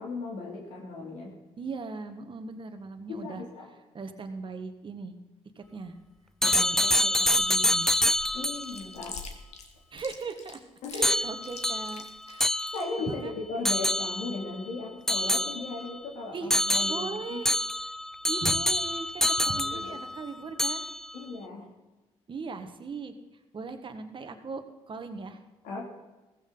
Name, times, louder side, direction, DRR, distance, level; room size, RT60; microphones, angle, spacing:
voice 1, 0.0-1.3 3.1-3.7 6.4-6.6 8.3-9.2 10.8-11.2 12.7-17.4 19.4-20.0 21.1-21.7 25.6-25.9, left 3 dB, 85° left, -1 dB, 2.8 m, -37 dB
voice 2, 1.6-3.4 3.9-5.2 5.5-6.0 6.4-7.9 9.9-10.6 10.9-12.5 13.1-13.3 16.3-16.5 16.9-17.5 18.3-20.8 22.3-23.1 23.5-25.4, right 4 dB, 40° right, 7 dB, 1.6 m, -39 dB
sound 1, 6.4-8.8 11.0-13.1 13.6-14.4 15.1-16.0 16.5-20.2 20.6-21.1, left 1 dB, 5° left, 0.5 m, -27 dB
Chewing mastication, 7.3-12.8, left 5 dB, 65° left, 1.9 m, -45 dB
15.5 x 15.0 x 4.0 m, 1.1 s
supercardioid pair, 70°, 12 cm